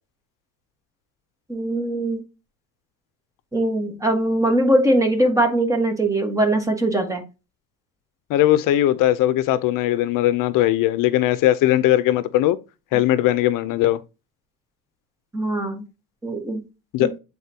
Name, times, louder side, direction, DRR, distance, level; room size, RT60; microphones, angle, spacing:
voice 1, 1.5-2.2 3.5-7.2 15.3-15.8 16.2-16.6 17.0-17.1, right 1 dB, 10° right, 1.5 m, -21 dB
voice 2, 8.3-12.6 12.9-14.0 16.9-17.1, left 14 dB, 70° left, 0.6 m, -19 dB
8.3 x 4.1 x 2.8 m
cardioid pair, 150°, 33 cm